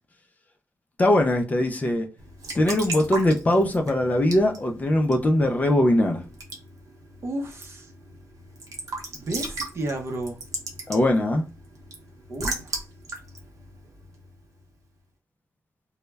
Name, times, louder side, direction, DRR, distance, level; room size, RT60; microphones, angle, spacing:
voice 1, 1.0-2.1 2.5-6.2 10.9-11.4, left 1 dB, 25° left, 0.4 m, -21 dB
Raindrop / Drip / Trickle dribble, 2.2-14.6, right 2 dB, 85° right, 0.7 m, -38 dB
voice 2, 7.2-7.9 9.1-10.4 12.3-12.8, right 1 dB, 50° right, 0.6 m, -32 dB
2.2 x 2.0 x 3.2 m
wide cardioid pair, 165°, 6 cm